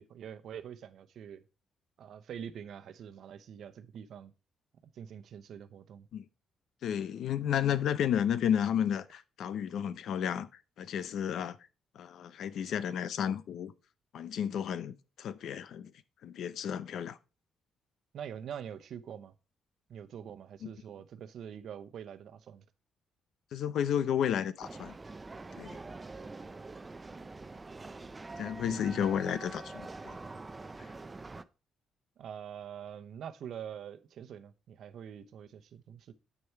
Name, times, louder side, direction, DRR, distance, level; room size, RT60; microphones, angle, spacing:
voice 1, 0.0-1.4 2.0-4.3 4.8-6.1 18.1-19.3 19.9-22.6 28.6-29.5 32.2-36.1, right 8 dB, 70° right, 0.9 m, -45 dB
voice 2, 6.8-10.5 10.8-11.6 11.9-13.7 14.1-15.9 16.2-17.2 20.6-20.7 23.5-25.0 25.6-25.8 28.4-30.2 30.8-30.9, left 9 dB, 70° left, 0.7 m, -32 dB
sound 1, 24.6-31.4, right 3 dB, 25° right, 0.6 m, -45 dB
8.6 x 6.4 x 4.6 m
cardioid pair, 90°, 0 cm